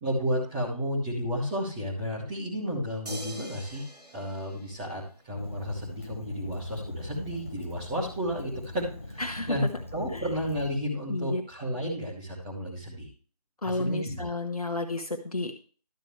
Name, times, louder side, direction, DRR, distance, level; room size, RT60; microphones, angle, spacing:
voice 1, 0.0-3.8 4.1-9.2 9.5-13.1 13.6-14.3, equal, 10° right, -7 dB, 2.0 m, -32 dB
sound 1, 3.1-5.5 7.3-7.4, right 1 dB, 80° right, 2.3 m, -44 dB
Fire, 5.4-10.8, left 1 dB, 20° left, 0.5 m, -41 dB
voice 2, 9.2-9.6 10.1-10.2 11.1-11.4 13.6-15.5, left 2 dB, 65° left, 5 dB, 1.2 m, -31 dB
12.0 x 7.6 x 3.2 m, 0.39 s
figure-of-eight pair, 160°, 20 cm